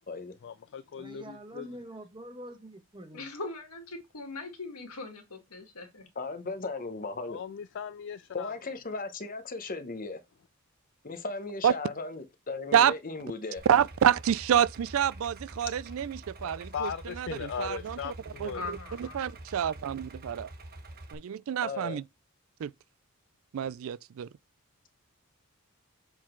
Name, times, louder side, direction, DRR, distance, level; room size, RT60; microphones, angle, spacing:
voice 1, 0.4-1.7 7.3-8.5 16.4-18.6, left 7 dB, 55° left, 0.3 m, -38 dB
voice 2, 1.0-3.3, right 1 dB, 20° right, 1.0 m, -45 dB
voice 3, 3.1-6.1 18.5-19.3, left 3 dB, 85° left, 2.0 m, -41 dB
voice 4, 6.2-7.4 8.3-10.2 11.0-13.6 21.6-22.0, left 3 dB, 40° left, 0.9 m, -36 dB
Idling, 13.6-21.1, right 1 dB, 40° right, 1.2 m, -46 dB
voice 5, 13.7-18.1 18.4-20.5 21.1-22.0 22.6-22.7 23.5-24.3, right 9 dB, 65° right, 0.3 m, -28 dB
7.3 x 3.9 x 4.4 m
head